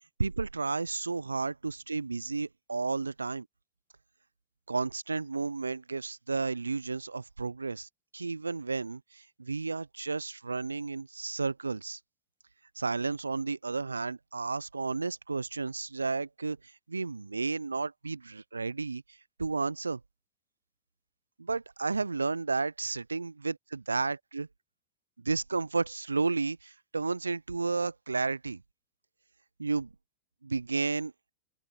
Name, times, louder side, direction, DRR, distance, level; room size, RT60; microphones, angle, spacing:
voice 1, 0.2-3.5 4.7-12.0 12.8-16.6 16.9-19.0 19.4-20.0 21.4-24.5 25.2-28.6 29.6-29.9 30.4-31.1, right 4 dB, 85° right, 0.6 m, -32 dB
open air
figure-of-eight pair, 95°, 0 cm